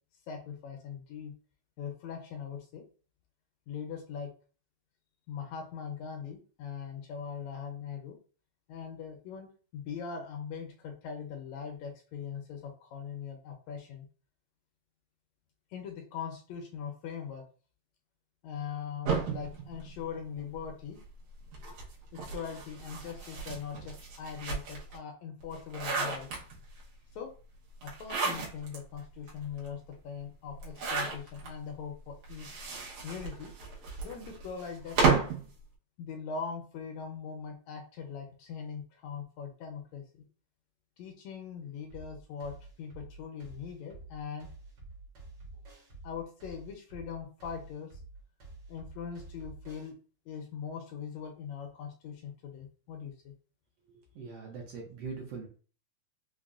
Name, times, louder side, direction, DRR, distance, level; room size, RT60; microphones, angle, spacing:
voice 1, 0.3-1.3 1.8-2.8 3.7-4.3 5.3-8.2 8.7-9.5 9.7-14.1 15.7-17.4 18.4-21.0 22.1-26.3 27.2-27.3 27.8-32.5 33.0-33.5 34.0-35.0 36.0-40.2 41.0-44.5 46.0-47.9 48.7-50.0 50.3-53.3, left 7 dB, 75° left, 3 dB, 1.7 m, -41 dB
sound 1, 19.1-20.7 21.5-25.0 25.4-26.8 27.8-28.8 29.3-29.4 29.6-29.7 30.6-31.5 32.2-35.5, right 5 dB, 90° right, 2.4 m, -32 dB
sound 2, 41.9-49.9, right 2 dB, 55° right, 1.2 m, -49 dB
voice 2, 54.1-55.5, right 4 dB, 70° right, -1 dB, 1.6 m, -41 dB
5.3 x 2.1 x 2.4 m, 0.39 s
omnidirectional pair, 3.4 m